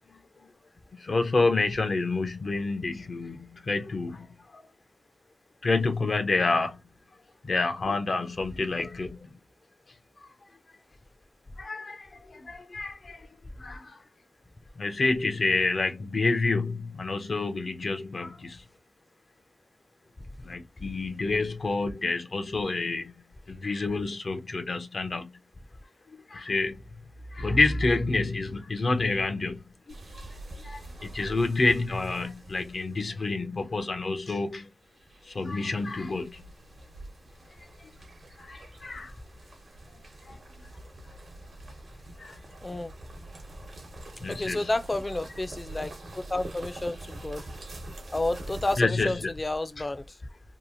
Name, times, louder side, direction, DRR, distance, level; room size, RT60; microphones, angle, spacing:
voice 1, 1.0-4.3 5.6-6.8 7.4-9.2 11.6-13.2 13.6-14.0 14.8-18.6 20.4-23.1 23.5-25.3 26.3-26.8 27.3-29.6 30.1-30.2 30.6-34.7 35.3-36.4 38.4-39.1 40.3-40.4 42.2-42.4 44.2-44.7 48.8-49.3 49.8-49.9, left 3 dB, 70° left, 0.6 m, -28 dB
sound 1, 29.9-33.2 35.0-48.8, right 2 dB, 80° right, 0.9 m, -45 dB
voice 2, 42.6-42.9 44.3-45.9 46.2-47.4 48.1-50.0, left 2 dB, 30° left, 0.4 m, -30 dB
2.9 x 2.4 x 2.6 m
wide cardioid pair, 90°, 0 cm